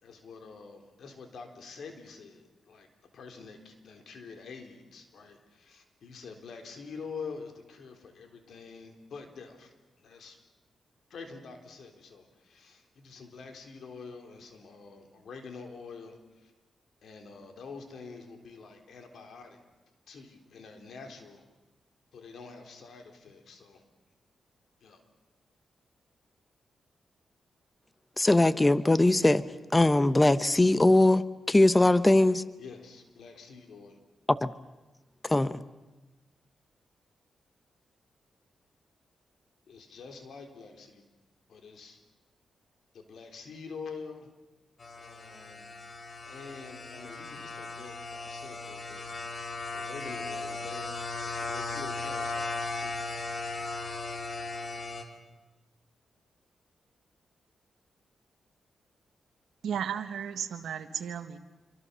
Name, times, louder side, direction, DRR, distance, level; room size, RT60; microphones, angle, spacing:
voice 1, 0.0-2.9 3.1-10.4 11.1-16.5 17.0-19.6 20.1-21.5 22.1-23.8 24.8-25.0 32.6-34.0 39.7-41.0 41.5-42.0 42.9-44.3 45.0-45.8 46.3-49.3 49.7-53.0, left 5 dB, 75° left, 3.8 m, -46 dB
voice 2, 28.2-29.4 29.7-32.4 34.3-34.5 35.2-35.6, left 2 dB, 20° left, 0.9 m, -21 dB
sound 1, 44.8-55.0, left 3 dB, 50° left, 3.5 m, -37 dB
voice 3, 59.6-61.4, right 8 dB, 85° right, 1.2 m, -34 dB
27.0 x 24.0 x 7.0 m
cardioid pair, 65°, 0 cm